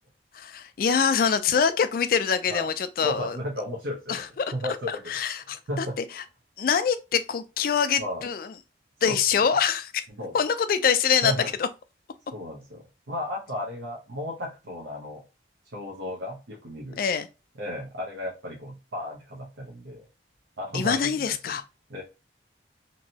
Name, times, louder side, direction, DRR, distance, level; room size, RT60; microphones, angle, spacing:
voice 1, 0.3-3.4 4.1-4.5 4.9-6.2 6.6-8.5 9.0-9.9 10.3-11.7 17.0-17.3 20.7-21.6, left 6 dB, 50° left, 0.3 m, -25 dB
voice 2, 3.0-5.1 5.5-6.0 8.0-8.2 9.0-9.2 10.1-10.4 11.2-11.5 12.3-15.2 15.7-17.0 17.6-20.1 20.6-21.6 21.9-22.0, left 1 dB, 75° right, 0.8 m, -34 dB
3.0 x 2.7 x 2.7 m
head